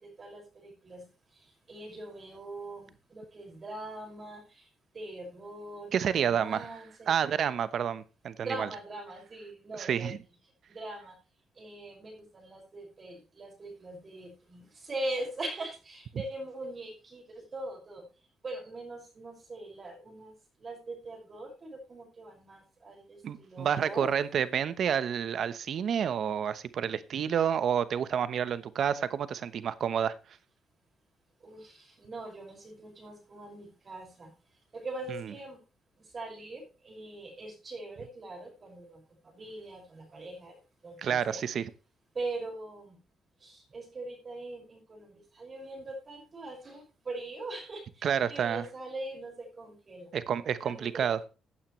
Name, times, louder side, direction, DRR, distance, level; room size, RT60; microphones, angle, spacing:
voice 1, 0.0-4.7 4.9-7.1 8.4-10.2 10.7-11.1 11.6-18.0 18.4-20.3 20.6-24.1 31.4-34.3 34.7-35.6 36.0-40.6 40.8-41.4 42.1-43.0 43.4-50.1 50.6-51.0, right 2 dB, 40° right, 5.8 m, -42 dB
voice 2, 5.9-6.7 7.1-8.7 9.7-10.2 23.2-30.2 41.0-41.7 48.0-48.6 50.1-51.2, right 8 dB, 60° right, 1.0 m, -29 dB
15.5 x 8.8 x 3.2 m
cardioid pair, 90°, 0 cm